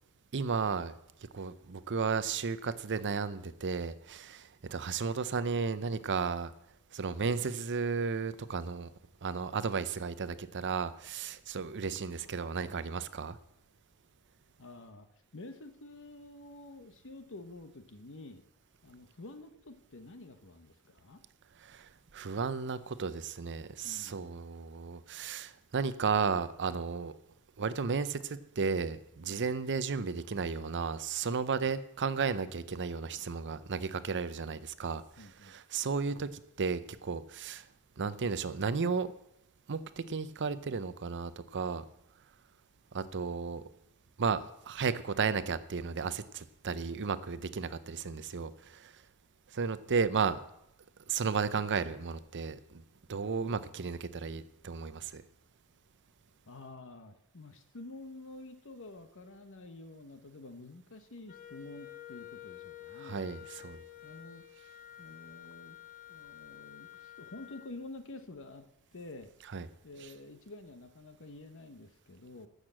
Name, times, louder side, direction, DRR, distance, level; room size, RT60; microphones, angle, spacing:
voice 1, 0.3-0.9 1.3-6.5 6.9-8.9 9.2-13.4 21.6-27.1 27.6-37.7 38.0-39.1 39.7-41.8 42.9-43.6 44.2-49.0 49.5-50.4 51.1-52.8 53.1-55.2 62.9-63.8 69.5-69.7 70.0-70.1, right 5 dB, 55° right, 14 dB, 0.6 m, -34 dB
voice 2, 14.6-15.1 15.3-18.4 18.8-21.2 23.8-24.2 31.6-31.7 33.0-33.2 35.2-35.6 56.5-63.3 64.0-64.4 65.0-65.8 66.1-68.7 68.9-69.5 69.8-72.5, left 2 dB, 60° left, 9 dB, 1.2 m, -49 dB
Wind instrument woodwind instrument, 61.3-67.7, left 13 dB, 40° left, 0.9 m, -50 dB
12.5 x 6.6 x 7.5 m, 0.78 s
head